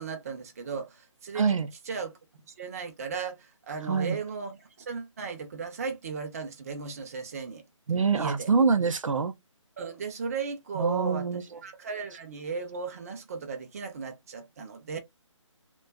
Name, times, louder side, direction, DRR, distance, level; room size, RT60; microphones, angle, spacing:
voice 1, 0.0-1.5 1.9-2.1 2.6-3.4 3.7-4.6 4.9-7.6 8.2-8.5 9.8-11.2 11.6-15.0, right 5 dB, 30° right, 0.5 m, -35 dB
voice 2, 1.3-1.7 3.8-4.2 7.9-9.3 10.8-11.4, right 5 dB, 80° right, 0.5 m, -25 dB
2.4 x 2.2 x 2.3 m
figure-of-eight pair, 155°, 17 cm